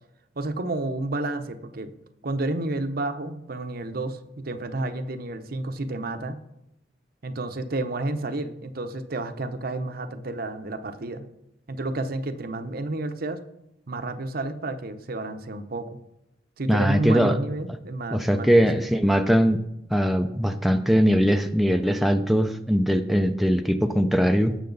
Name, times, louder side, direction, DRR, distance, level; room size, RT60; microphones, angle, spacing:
voice 1, 0.4-1.9 2.2-6.4 7.2-11.3 11.7-13.4 13.9-16.0 16.6-18.7, right 2 dB, 55° right, 9 dB, 0.8 m, -30 dB
voice 2, 16.7-17.4 18.1-19.6 19.9-24.6, equal, ahead, 5 dB, 0.5 m, -21 dB
17.5 x 6.6 x 4.0 m, 0.85 s
head